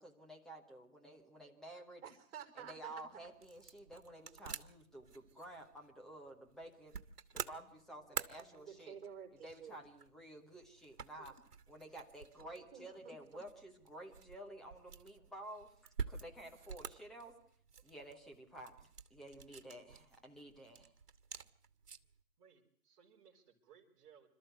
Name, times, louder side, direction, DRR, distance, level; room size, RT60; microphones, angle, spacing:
voice 1, 0.0-2.0 2.5-6.9 7.3-9.0 9.4-11.4 11.7-17.3 17.8-20.9, right 1 dB, ahead, 1 dB, 0.9 m, -52 dB
voice 2, 2.0-2.8 8.0-9.8 12.7-13.4, right 7 dB, 40° right, 4 dB, 4.7 m, -52 dB
sound 1, 2.7-22.2, right 6 dB, 80° right, 1.5 m, -50 dB
voice 3, 22.4-24.3, right 7 dB, 20° right, -3 dB, 4.5 m, -64 dB
27.0 x 13.5 x 7.9 m, 0.63 s
hypercardioid pair, 155°, 46 cm